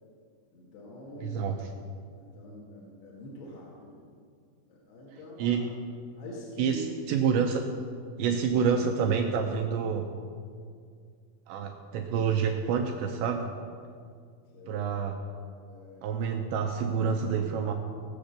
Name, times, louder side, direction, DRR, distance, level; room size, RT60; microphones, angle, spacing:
voice 1, 0.5-1.4 2.1-4.1 4.7-5.7 6.2-6.8 14.5-15.1 15.7-16.2, left 2 dB, 60° left, -5 dB, 3.8 m, -45 dB
voice 2, 1.2-1.6 5.4-5.7 6.6-7.7 8.2-10.1 11.5-13.5 14.7-15.2 16.0-17.7, right 6 dB, 80° right, 3 dB, 2.6 m, -28 dB
19.0 x 7.9 x 6.7 m, 2.2 s
omnidirectional pair, 5.9 m